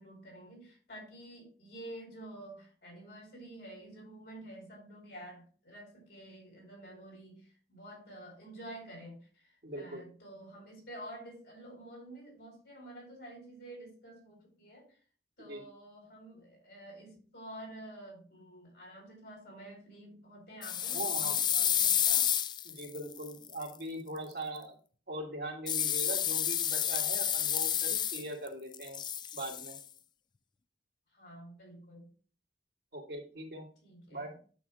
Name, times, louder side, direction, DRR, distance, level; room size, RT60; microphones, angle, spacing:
voice 1, 0.0-15.0 15.4-22.3 31.1-32.1 33.8-34.4, right 1 dB, 65° left, -1 dB, 4.6 m, -49 dB
voice 2, 9.6-10.0 15.4-15.6 20.9-21.3 22.6-24.8 25.1-29.0 29.3-29.8 32.9-33.7 34.1-34.3, right 1 dB, 65° right, 1 dB, 2.1 m, -41 dB
sound 1, 20.6-23.7 25.7-28.5 28.7-29.8, left 10 dB, 25° left, 0.3 m, -30 dB
9.2 x 7.5 x 2.4 m, 0.40 s
head